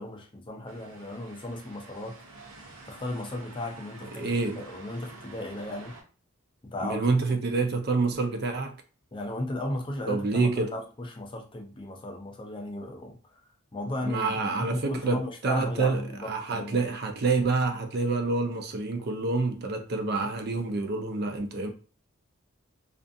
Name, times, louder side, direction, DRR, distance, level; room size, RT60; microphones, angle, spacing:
voice 1, 0.0-2.2 2.9-6.0 6.6-7.1 9.1-13.4 13.7-16.8, left 1 dB, 25° left, 0.4 m, -35 dB
sound 1, 0.7-6.0, right 2 dB, 90° right, 0.7 m, -48 dB
voice 2, 4.2-4.6 6.8-8.8 10.1-10.8 14.0-21.7, right 3 dB, 50° right, 0.4 m, -27 dB
2.5 x 2.3 x 2.6 m
head